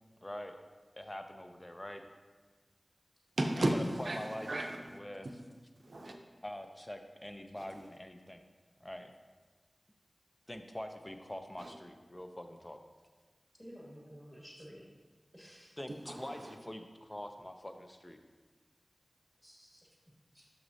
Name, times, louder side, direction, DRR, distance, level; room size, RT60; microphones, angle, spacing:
voice 1, 0.2-0.6 1.0-2.0 4.0-4.5 4.9-5.3 6.4-8.4 8.8-9.1 10.5-12.8 15.8-16.8 17.1-18.2, left 1 dB, 25° left, 6 dB, 0.6 m, -44 dB
voice 2, 3.4-5.0 5.2-5.3 5.8-6.1 7.6-7.7 11.6-11.7 16.1-16.6, right 1 dB, 75° right, 3 dB, 0.6 m, -35 dB
voice 3, 13.6-14.8 15.3-15.8 19.4-19.9 20.3-20.5, equal, ahead, -3 dB, 1.8 m, -52 dB
6.2 x 6.1 x 2.7 m, 1.4 s
wide cardioid pair, 45°, 0 cm